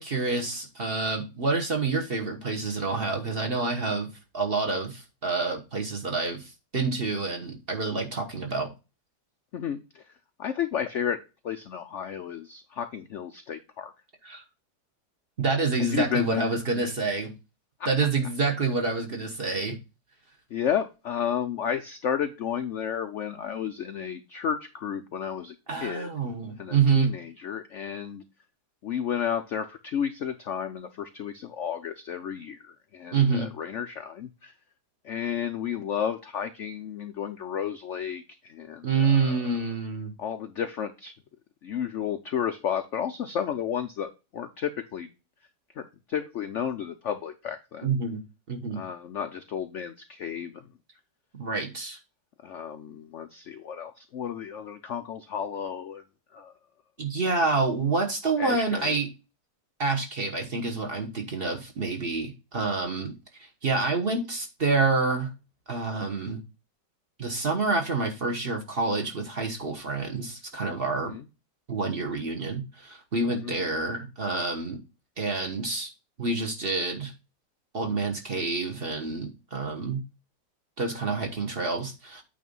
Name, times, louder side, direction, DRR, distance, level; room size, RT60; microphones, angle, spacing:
voice 1, 0.0-4.1 4.3-8.7 14.2-14.4 15.4-17.3 17.8-19.8 25.7-27.1 33.1-33.5 38.8-40.1 47.8-48.2 48.5-48.8 51.3-52.0 57.0-59.1 59.8-63.1 63.4-65.3 65.7-66.4 67.2-71.1 71.7-74.8 75.2-75.9 76.2-77.1 77.7-80.0 80.8-82.2, right 4 dB, 35° right, 2 dB, 1.2 m, -27 dB
voice 2, 9.5-10.0 10.4-11.2 11.4-13.9 15.9-16.6 20.5-25.5 25.8-26.1 26.6-28.2 28.8-34.5 35.0-39.3 40.2-41.1 41.6-45.1 45.8-47.9 48.8-50.5 52.4-56.0 56.3-56.5 58.4-59.0 71.0-71.3 73.4-73.5, left 8 dB, 70° left, 8 dB, 0.7 m, -32 dB
8.8 x 3.4 x 5.3 m, 0.28 s
omnidirectional pair, 1.9 m